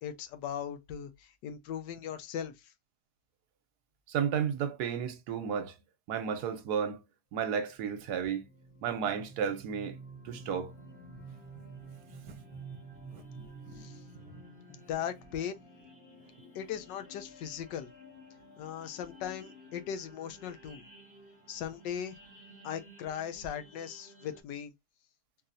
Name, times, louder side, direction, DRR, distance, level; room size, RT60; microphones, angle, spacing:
voice 1, 0.0-2.7 13.7-14.0 14.7-15.6 16.5-17.9 18.6-20.8 21.5-22.2 22.6-24.7, left 9 dB, 80° left, 1.3 m, -38 dB
voice 2, 4.1-5.7 6.1-7.0 7.3-8.4 8.8-10.0 10.2-10.7 12.3-12.4 13.1-13.2 13.7-13.8, right 7 dB, 75° right, 1.1 m, -33 dB
sound 1, 7.7-24.4, right 2 dB, 35° left, 1.1 m, -51 dB
3.9 x 2.8 x 2.6 m
omnidirectional pair, 1.9 m